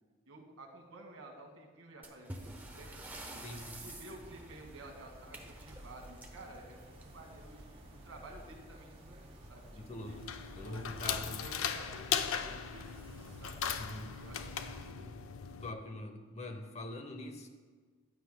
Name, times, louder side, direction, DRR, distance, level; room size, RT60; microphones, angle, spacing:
voice 1, 0.3-3.5 3.8-9.7 10.0-10.2 10.6-13.1 13.4-13.7 14.2-15.1, right 2 dB, 75° right, 2 dB, 1.6 m, -52 dB
sound 1, 2.0-7.4 8.7-8.8 9.1-9.2 9.9-10.0 10.7-10.9, right 1 dB, 10° right, 0.8 m, -50 dB
sound 2, 2.4-14.9, right 1 dB, 25° right, 1.5 m, -53 dB
voice 2, 3.4-3.8 9.7-10.2 10.6-11.5 13.8-14.2 15.6-17.5, left 1 dB, 30° left, 6 dB, 0.7 m, -43 dB
sound 3, 10.1-15.7, left 8 dB, 75° left, 0.5 m, -38 dB
15.0 x 9.8 x 2.2 m, 1.5 s
head